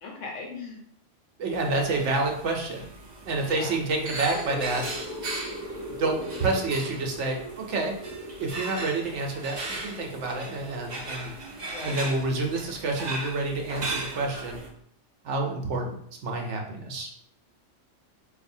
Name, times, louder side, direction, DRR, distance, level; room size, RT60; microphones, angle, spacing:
voice 1, 0.0-0.8 3.4-3.8 11.6-12.1, left 4 dB, 85° left, 0 dB, 1.3 m, -38 dB
voice 2, 1.4-2.9 3.3-4.9 5.9-8.0 8.4-11.3 11.8-14.6 15.2-17.1, right 3 dB, 70° right, 1 dB, 1.0 m, -28 dB
sound 1, 1.5-14.7, right 2 dB, 45° right, 0.6 m, -38 dB
sound 2, 4.1-11.3, left 1 dB, 30° left, 0.4 m, -40 dB
4.8 x 2.6 x 2.6 m, 0.66 s
omnidirectional pair, 1.3 m